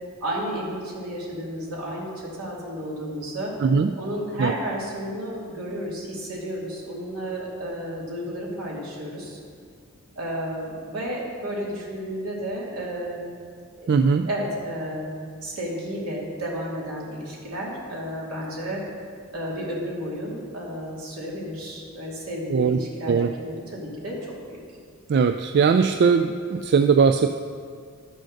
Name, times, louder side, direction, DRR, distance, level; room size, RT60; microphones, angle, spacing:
voice 1, 0.2-3.6 4.0-9.4 10.1-13.4 13.7-14.0 14.2-15.1 15.4-18.8 19.3-24.6, equal, 75° right, -4 dB, 2.7 m, -32 dB
voice 2, 3.6-3.9 4.4-4.5 13.9-14.3 22.5-22.8 23.1-23.3 25.1-27.4, right 5 dB, 50° right, 7 dB, 0.3 m, -19 dB
11.5 x 6.4 x 6.5 m, 2.1 s
head